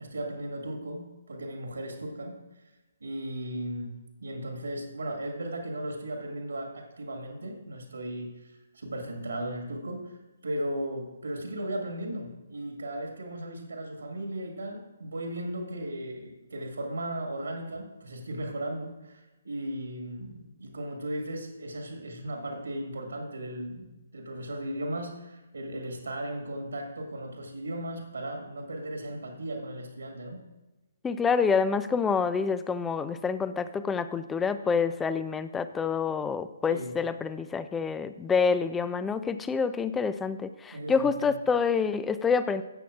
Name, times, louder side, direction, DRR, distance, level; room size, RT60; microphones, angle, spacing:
voice 1, 0.0-2.4 3.0-10.2 10.4-19.2 19.4-30.4 36.7-37.0 40.7-41.3, right 1 dB, 70° right, 3 dB, 1.7 m, -36 dB
voice 2, 31.0-42.6, left 5 dB, 10° left, 13 dB, 0.3 m, -27 dB
13.5 x 8.3 x 2.4 m, 1.1 s
figure-of-eight pair, 135°, 0 cm